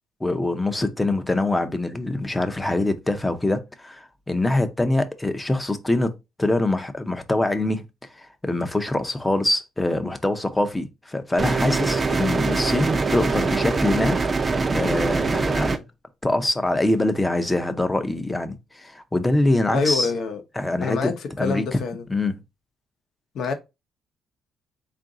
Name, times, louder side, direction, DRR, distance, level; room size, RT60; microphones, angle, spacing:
voice 1, 0.2-7.9 8.1-15.8 16.2-20.1 20.6-21.1 21.4-21.8 22.1-22.3, left 2 dB, 15° left, 0.6 m, -24 dB
sound 1, 11.4-15.8, right 4 dB, 35° right, 0.5 m, -23 dB
voice 2, 19.7-20.4 20.8-22.0 23.3-23.5, left 4 dB, 75° left, 0.8 m, -26 dB
3.8 x 2.5 x 3.7 m
cardioid pair, 90°, 0 cm